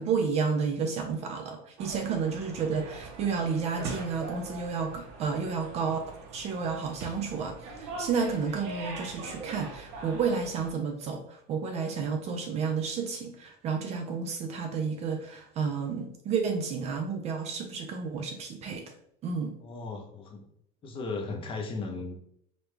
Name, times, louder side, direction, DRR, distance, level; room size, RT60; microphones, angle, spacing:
voice 1, 0.0-6.0 6.3-18.9 19.2-19.6, right 5 dB, 30° right, 4 dB, 0.4 m, -31 dB
sound 1, 1.8-10.7, right 3 dB, 65° right, 0.8 m, -42 dB
voice 2, 19.6-20.4 20.8-22.2, left 3 dB, 25° left, 2 dB, 0.6 m, -36 dB
5.0 x 2.2 x 3.2 m, 0.71 s
cardioid pair, 165°, 21 cm